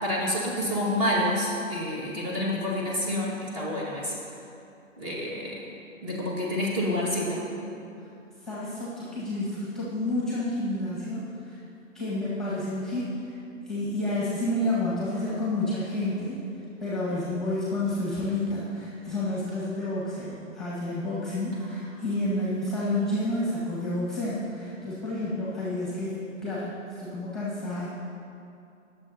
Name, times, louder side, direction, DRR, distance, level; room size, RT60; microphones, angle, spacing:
voice 1, 0.0-4.2 5.0-5.6 6.0-7.4 21.6-22.0, left 1 dB, 25° right, -4 dB, 1.8 m, -28 dB
voice 2, 2.1-2.6 8.4-11.6 11.9-13.4 13.7-16.4 16.8-27.9, left 1 dB, ahead, -8 dB, 1.6 m, -30 dB
20.0 x 7.1 x 2.8 m, 2.7 s
hypercardioid pair, 140°, 40 cm